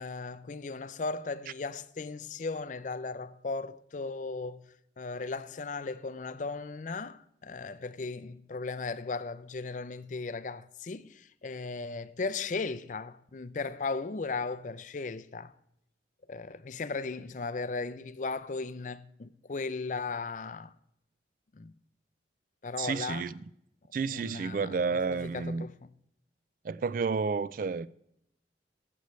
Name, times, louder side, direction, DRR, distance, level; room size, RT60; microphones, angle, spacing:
voice 1, 0.0-4.7 5.0-15.5 16.3-20.7 21.5-21.7 22.6-23.3 24.1-24.7 25.2-25.9, left 4 dB, 45° left, 0.4 m, -36 dB
voice 2, 22.8-23.4 23.9-25.7 26.6-27.9, right 5 dB, 50° right, 0.3 m, -31 dB
15.0 x 7.8 x 3.1 m
head